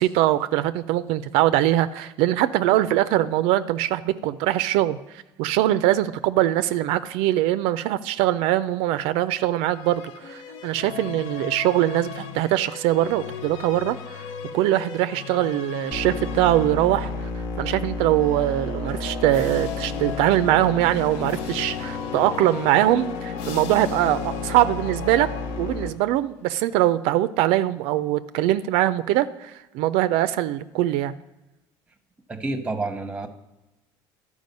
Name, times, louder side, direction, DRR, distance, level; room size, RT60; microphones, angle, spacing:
voice 1, 0.0-5.0 5.4-14.2 14.5-17.3 17.6-25.3 25.6-31.2, right 14 dB, 80° right, 13 dB, 0.4 m, -22 dB
sound 1, 9.7-17.5 18.1-26.0, left 7 dB, 85° left, 0.7 m, -37 dB
sound 2, 15.9-25.9, left 3 dB, 65° left, 1.0 m, -32 dB
voice 2, 32.3-33.3, right 2 dB, 10° right, 8 dB, 0.8 m, -29 dB
12.0 x 4.8 x 5.3 m, 1.0 s
cardioid pair, 125°, 10 cm